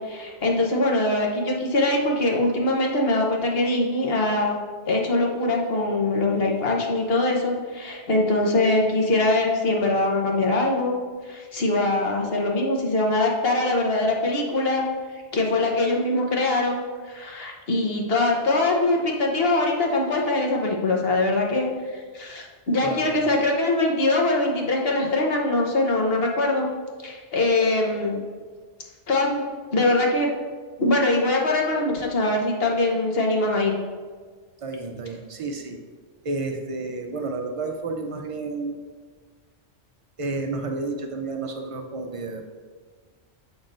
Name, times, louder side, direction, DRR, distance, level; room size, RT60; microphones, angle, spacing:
voice 1, 0.0-4.5 4.9-11.0 11.2-14.8 15.3-26.7 27.0-28.2 29.1-29.4 29.7-30.3 30.8-33.8, left 2 dB, 55° left, 0 dB, 1.2 m, -23 dB
voice 2, 22.8-23.3 34.6-35.8 36.2-38.8 40.2-42.4, right 3 dB, 40° right, 4 dB, 0.5 m, -31 dB
7.3 x 5.9 x 2.6 m, 1.5 s
omnidirectional pair, 1.2 m